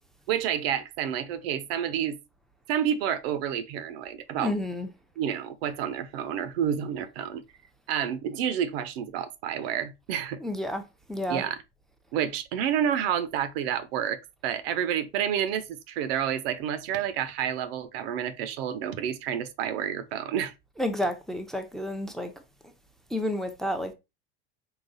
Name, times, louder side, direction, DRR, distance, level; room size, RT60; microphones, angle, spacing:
voice 1, 0.3-2.2 2.7-4.5 5.2-7.4 7.9-10.4 11.3-11.6 12.1-20.5, right 9 dB, 70° right, 0.7 m, -29 dB
voice 2, 4.4-4.9 10.4-10.8 11.1-11.4 20.8-22.3 23.1-23.9, left 1 dB, ahead, 0.6 m, -30 dB
3.9 x 2.3 x 3.9 m
supercardioid pair, 105°, 31 cm